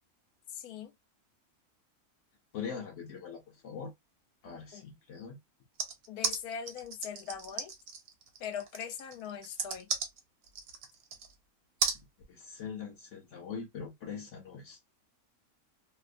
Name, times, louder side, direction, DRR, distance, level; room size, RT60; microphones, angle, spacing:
voice 1, 0.6-0.9 4.7-4.9 6.1-7.7 8.4-9.9, left 8 dB, 85° left, 1.1 m, -41 dB
voice 2, 2.5-3.9 4.4-5.4 12.3-14.9, left 6 dB, 60° left, 0.9 m, -42 dB
sound 1, 5.8-11.3 11.8-12.0, right 5 dB, 75° right, 1.1 m, -35 dB
2.8 x 2.0 x 2.5 m
omnidirectional pair, 1.6 m